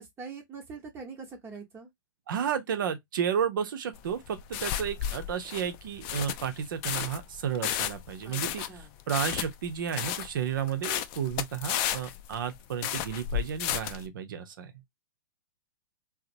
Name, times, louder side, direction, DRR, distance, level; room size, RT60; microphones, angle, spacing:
voice 1, 0.0-1.9 8.2-8.4 8.7-9.0, right 5 dB, 20° right, 1.0 m, -43 dB
voice 2, 2.3-8.6 9.1-14.7, right 8 dB, 65° right, 0.7 m, -32 dB
sound 1, 3.9-14.1, left 11 dB, 40° left, 0.4 m, -33 dB
2.8 x 2.0 x 2.5 m
hypercardioid pair, 115°, 12 cm